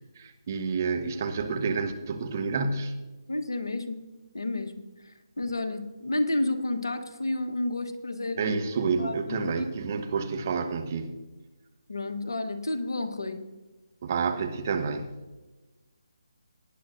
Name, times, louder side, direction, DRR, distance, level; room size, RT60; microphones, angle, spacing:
voice 1, 0.2-2.9 8.4-11.1 14.0-15.2, right 5 dB, 35° right, 6 dB, 1.2 m, -29 dB
voice 2, 3.3-4.0 4.3-4.7 5.0-8.6 9.0-9.7 11.9-13.4, left 2 dB, 65° left, 6 dB, 1.3 m, -31 dB
18.5 x 10.0 x 2.6 m, 1.2 s
figure-of-eight pair, 150°, 2 cm